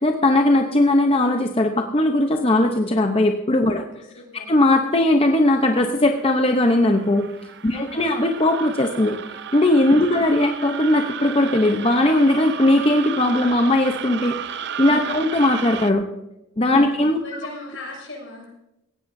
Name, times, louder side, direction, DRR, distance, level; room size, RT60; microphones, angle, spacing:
voice 1, 0.0-3.8 4.5-7.3 7.6-9.2 9.5-14.4 14.8-16.1 16.6-17.2, left 1 dB, 25° left, 4 dB, 0.8 m, -18 dB
voice 2, 3.7-4.5 7.7-8.2 10.0-10.3 15.0-15.4 16.8-16.9 17.2-18.5, left 2 dB, 65° left, -1 dB, 6.4 m, -39 dB
sound 1, 5.9-15.9, right 7 dB, 55° right, 0.6 m, -34 dB
18.0 x 15.5 x 2.7 m, 0.88 s
head